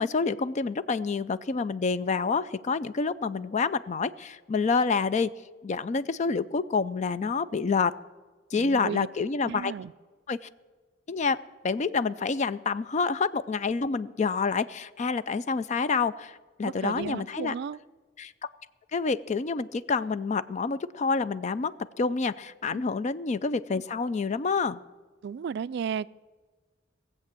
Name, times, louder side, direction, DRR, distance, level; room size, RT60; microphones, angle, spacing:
voice 1, 0.0-5.3 5.6-7.9 8.5-9.7 10.3-10.4 11.1-11.4 11.6-17.5 18.2-18.3 18.9-24.8, left 4 dB, 35° left, 15 dB, 0.4 m, -28 dB
voice 2, 8.5-9.1 9.4-9.9 16.6-17.8 22.7-22.8 25.2-26.1, right 7 dB, 60° right, 18 dB, 0.3 m, -34 dB
17.5 x 7.6 x 7.5 m, 1.4 s
head